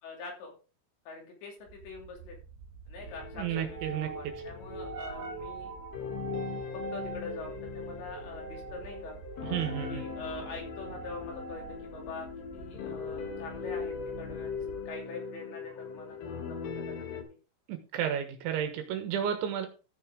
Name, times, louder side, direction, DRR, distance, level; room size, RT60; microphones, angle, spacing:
voice 1, 0.0-0.6 1.1-2.4 2.9-5.7 6.4-9.2 9.9-12.3 12.5-14.6 14.9-17.4, left 4 dB, 65° left, 0 dB, 5.0 m, -44 dB
sound 1, 1.7-15.0, right 5 dB, 60° right, 3.6 m, -45 dB
sound 2, 3.0-17.2, left 5 dB, 80° left, 4.7 m, -40 dB
voice 2, 3.4-4.1 9.5-10.0 17.7-19.7, right 9 dB, 75° right, 7 dB, 3.6 m, -32 dB
14.5 x 6.5 x 3.9 m, 0.33 s
omnidirectional pair, 5.7 m